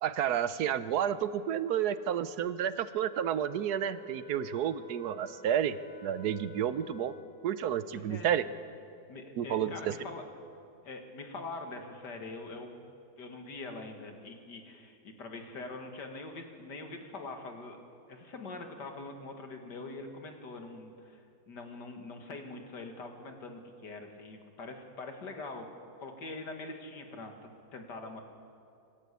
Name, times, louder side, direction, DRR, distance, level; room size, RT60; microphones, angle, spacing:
voice 1, 0.0-5.8 6.0-7.1 7.4-8.4 9.4-9.9, right 9 dB, 75° right, 13 dB, 1.2 m, -31 dB
Wind instrument woodwind instrument, 2.8-7.4, equal, 60° left, 2.7 m, -52 dB
voice 2, 7.9-8.4 9.1-10.3 10.8-12.8 13.2-17.8 18.1-25.7 26.0-27.3 27.7-28.2, left 3 dB, 90° left, 4 dB, 2.5 m, -43 dB
26.0 x 13.0 x 8.3 m, 2.6 s
omnidirectional pair, 1.8 m